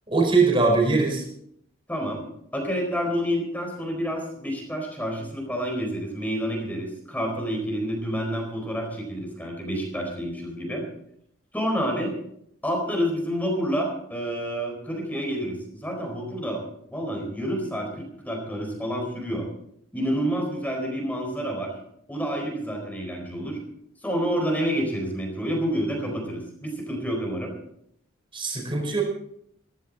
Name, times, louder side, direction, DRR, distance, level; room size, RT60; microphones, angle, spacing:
voice 1, 0.1-1.2 28.3-29.0, right 3 dB, 25° right, 0 dB, 4.8 m, -21 dB
voice 2, 1.9-2.3 2.5-10.9 11.5-12.2 12.6-16.6 16.9-19.5 19.9-21.7 22.1-23.6 24.0-27.5, equal, 10° left, 2 dB, 4.3 m, -28 dB
16.5 x 15.5 x 4.1 m, 0.71 s
head